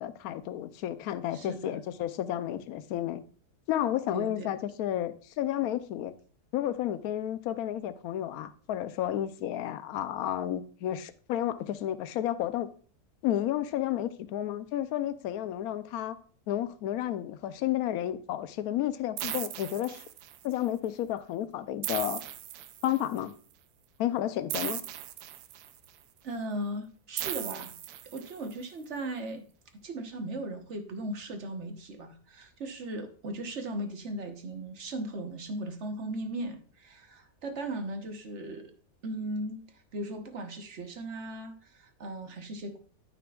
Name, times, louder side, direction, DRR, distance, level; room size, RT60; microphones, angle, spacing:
voice 1, 0.0-3.2 3.7-6.1 6.5-12.7 13.2-16.2 16.5-20.0 20.4-22.2 22.8-23.3 24.0-24.8, left 12 dB, 75° left, 1.1 m, -31 dB
voice 2, 1.3-1.8 4.1-4.5 26.2-27.7 28.0-29.4 29.8-38.7 39.0-42.8, right 1 dB, 50° right, 1.2 m, -37 dB
sound 1, 19.2-20.5 21.8-23.2 24.5-25.9 27.2-28.5, right 12 dB, 75° right, 1.1 m, -37 dB
12.5 x 5.9 x 2.4 m
omnidirectional pair, 1.7 m